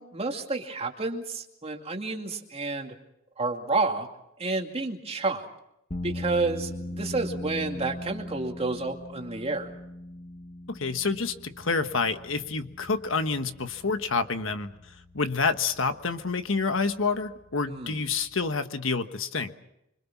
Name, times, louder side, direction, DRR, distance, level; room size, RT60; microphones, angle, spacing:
voice 1, 0.0-3.0 3.4-4.1 4.4-5.5 6.0-9.7 17.7-18.0, right 3 dB, 30° right, 3 dB, 2.4 m, -30 dB
sound 1, 5.9-18.4, left 1 dB, 35° left, 1.7 m, -41 dB
voice 2, 10.7-14.7 15.1-19.5, left 4 dB, 75° left, 9 dB, 1.4 m, -28 dB
26.0 x 25.0 x 6.0 m, 0.81 s
head